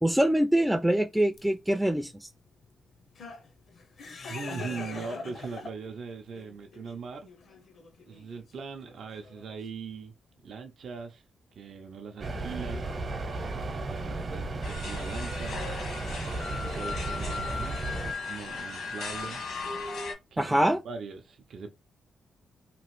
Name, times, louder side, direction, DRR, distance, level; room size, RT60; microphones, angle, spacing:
voice 1, 0.0-2.3 20.4-20.8, right 1 dB, 5° right, 0.3 m, -24 dB
sound 1, 1.4-1.5 2.1-2.2 3.0-6.0 6.3-9.6, left 4 dB, 65° left, 0.6 m, -42 dB
voice 2, 4.3-7.3 8.1-10.1 10.4-11.2 11.5-12.9 13.5-15.6 16.5-19.4 20.3-21.7, right 5 dB, 70° right, 0.4 m, -40 dB
sound 2, 12.2-18.1, right 2 dB, 55° right, 0.8 m, -34 dB
sound 3, 14.6-20.1, left 4 dB, 85° left, 1.1 m, -37 dB
2.9 x 2.5 x 3.0 m
supercardioid pair, 60°, 0 cm